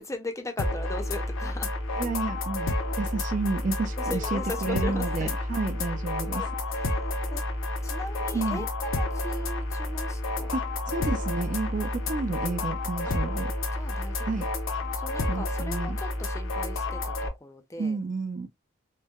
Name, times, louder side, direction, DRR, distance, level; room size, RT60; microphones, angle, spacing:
voice 1, 0.0-1.7 4.1-5.4 6.3-6.8 7.3-7.4 7.8-10.6 13.8-14.5 14.8-17.1 17.4-18.0, left 2 dB, 15° left, 0.5 m, -38 dB
sound 1, 0.6-17.3, left 2 dB, 70° left, 0.7 m, -30 dB
voice 2, 2.0-6.5 8.3-8.7 10.5-13.5 14.2-14.5 15.3-16.0 17.8-18.5, right 3 dB, 40° right, 0.4 m, -31 dB
4.4 x 2.1 x 2.3 m
head